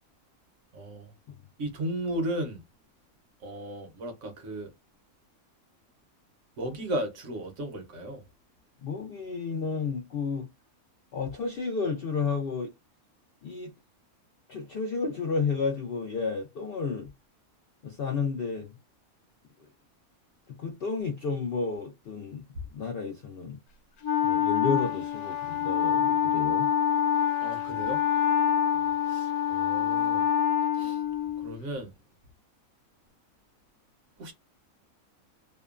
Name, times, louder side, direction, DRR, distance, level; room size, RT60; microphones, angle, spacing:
voice 1, 0.7-1.1 1.6-2.6 3.4-4.7 6.6-8.2 27.4-28.0 29.1-30.3 30.7-31.0 31.4-31.9 34.2-34.3, right 1 dB, 65° right, 1.0 m, -35 dB
voice 2, 8.8-10.5 11.1-12.7 13.4-13.7 14.5-17.1 17.8-18.7 20.6-22.4 22.7-23.6 24.2-26.7, left 4 dB, 65° left, 0.5 m, -31 dB
Wind instrument woodwind instrument, 24.0-31.6, left 8 dB, 90° left, 1.1 m, -26 dB
2.8 x 2.1 x 2.3 m
omnidirectional pair, 1.5 m